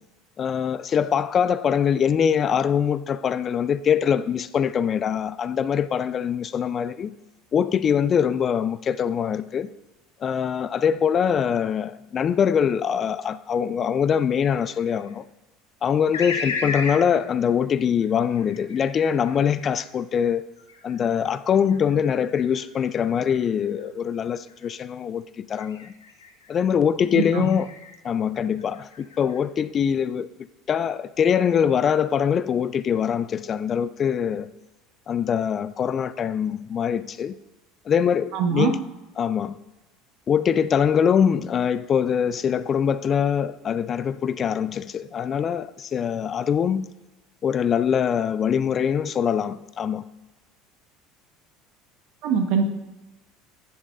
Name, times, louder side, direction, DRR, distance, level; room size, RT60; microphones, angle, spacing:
voice 1, 0.4-7.1 7.5-9.7 10.2-15.2 15.8-20.5 20.8-25.9 26.5-27.7 28.0-30.3 30.7-34.5 35.1-37.3 37.9-38.8 39.2-39.6 40.3-46.9 47.4-50.0, left 8 dB, 35° left, 0.4 m, -23 dB
sound 1, 14.4-15.1 16.1-17.0 18.0-19.9 20.6-23.9 24.3-24.7 25.6-26.5 27.2-28.0 28.4-29.4, left 4 dB, 80° left, 1.0 m, -36 dB
voice 2, 27.1-27.5 38.3-38.8 52.2-52.6, right 6 dB, 55° right, 1.2 m, -22 dB
11.0 x 9.5 x 2.5 m
figure-of-eight pair, 70°, 0 cm